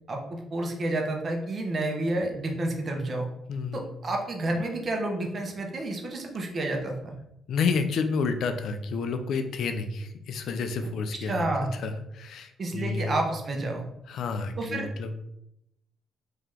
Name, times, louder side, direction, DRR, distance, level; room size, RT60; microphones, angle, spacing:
voice 1, 0.1-3.3 3.7-7.1 11.3-11.7 12.6-13.9 14.6-14.9, right 2 dB, 40° right, 2 dB, 0.8 m, -30 dB
voice 2, 3.5-4.0 7.5-11.5 11.7-13.2 14.1-15.1, left 4 dB, 70° left, 7 dB, 0.4 m, -30 dB
3.2 x 2.8 x 3.6 m, 0.82 s
cardioid pair, 90°, 0 cm